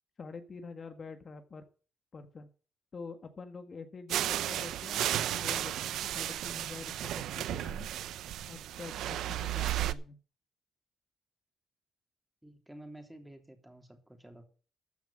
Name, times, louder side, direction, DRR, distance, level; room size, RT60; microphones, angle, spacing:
voice 1, 0.2-1.6 2.1-2.5 2.9-7.9 8.5-10.2, left 4 dB, 40° left, 7 dB, 1.6 m, -46 dB
sound 1, 4.1-9.9, right 12 dB, 80° right, 0.7 m, -34 dB
voice 2, 12.4-14.5, right 1 dB, 5° right, 5 dB, 3.4 m, -51 dB
14.5 x 5.9 x 7.5 m, 0.38 s
cardioid pair, 90°, 0 cm